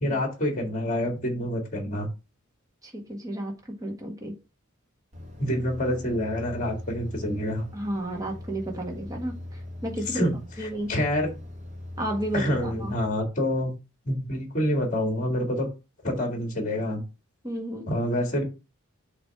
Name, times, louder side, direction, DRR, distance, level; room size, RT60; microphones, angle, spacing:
voice 1, 0.0-2.1 5.4-7.7 10.1-11.3 12.3-13.7 14.1-15.7 16.0-17.0 17.9-18.4, left 1 dB, 35° left, 3 dB, 1.8 m, -27 dB
voice 2, 2.8-3.5 3.8-4.3 7.7-10.2 10.6-10.9 12.0-12.9 17.4-17.9, right 1 dB, 15° right, 0 dB, 1.5 m, -32 dB
sound 1, 5.1-13.1, left 1 dB, 35° right, 1.6 m, -41 dB
7.7 x 3.1 x 4.6 m, 0.29 s
head